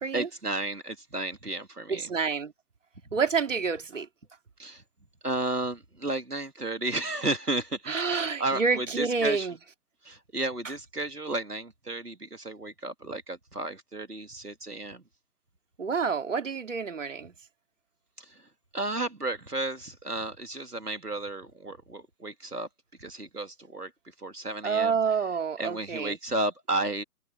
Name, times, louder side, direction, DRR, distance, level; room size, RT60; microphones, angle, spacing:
voice 1, 0.1-2.1 3.1-3.2 4.6-4.8 5.2-9.5 10.0-15.0 18.2-18.5 18.7-22.7 23.0-23.9 24.2-25.2 25.6-27.0, right 2 dB, 85° right, 2.7 m, -33 dB
voice 2, 1.9-2.5 3.1-4.1 7.9-9.5 15.8-17.3 24.6-26.1, right 5 dB, 55° right, 2.7 m, -28 dB
figure-of-eight pair, 140°, 45 cm